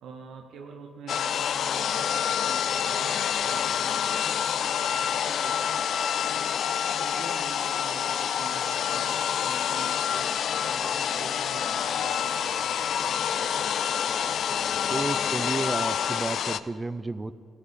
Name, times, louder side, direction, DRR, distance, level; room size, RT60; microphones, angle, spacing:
voice 1, 0.0-6.5 7.0-10.3 10.7-14.1 14.9-15.4, right 5 dB, 75° right, 3 dB, 0.8 m, -45 dB
sound 1, 1.1-16.6, left 8 dB, 65° left, 0.3 m, -27 dB
voice 2, 14.9-17.3, right 3 dB, 20° right, 16 dB, 0.4 m, -31 dB
14.0 x 10.0 x 4.1 m, 2.6 s
cardioid pair, 90°, 0 cm